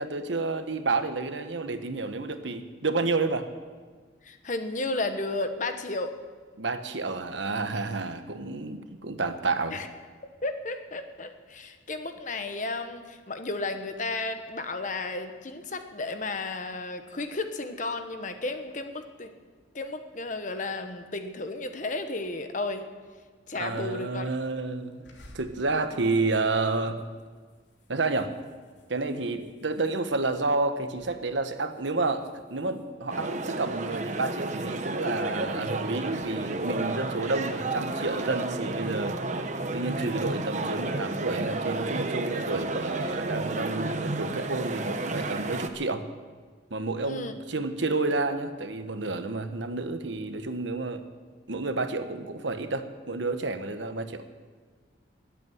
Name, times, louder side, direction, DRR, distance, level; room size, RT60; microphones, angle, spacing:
voice 1, 0.0-3.5 6.6-9.8 23.5-25.1 25.3-27.0 27.9-28.3 28.9-39.2 39.7-46.0 46.7-51.0 51.5-54.2, right 3 dB, 75° right, 9 dB, 1.1 m, -30 dB
voice 2, 4.2-6.1 9.7-9.9 10.4-19.3 19.7-22.9 23.5-24.2 47.0-47.3, left 2 dB, 40° left, 7 dB, 1.2 m, -33 dB
sound 1, 25.0-30.4 30.8-31.2 31.6-33.6 34.1-36.3, equal, 70° left, 2.9 m, -53 dB
sound 2, 33.1-45.7, right 2 dB, 40° right, 1.0 m, -31 dB
20.5 x 8.5 x 7.8 m, 1.5 s
head